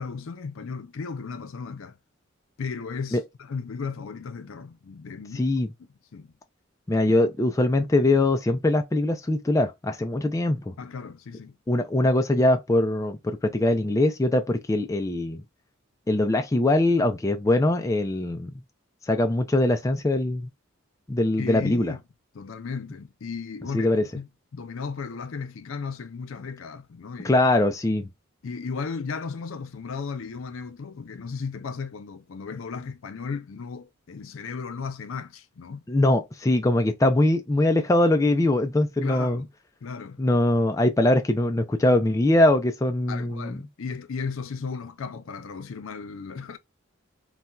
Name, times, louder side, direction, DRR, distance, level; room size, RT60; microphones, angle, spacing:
voice 1, 0.0-2.0 2.6-5.5 6.1-6.3 10.8-11.6 21.4-22.0 22.3-23.9 24.2-27.4 28.4-35.8 39.0-39.5 39.8-40.2 43.1-46.6, left 5 dB, 75° left, 0.5 m, -35 dB
voice 2, 5.3-5.7 6.9-10.7 11.7-15.4 16.1-18.5 19.1-20.5 21.1-21.9 23.7-24.0 27.2-28.1 35.9-39.4 40.2-43.6, left 1 dB, 15° left, 0.3 m, -22 dB
4.1 x 2.2 x 2.3 m
head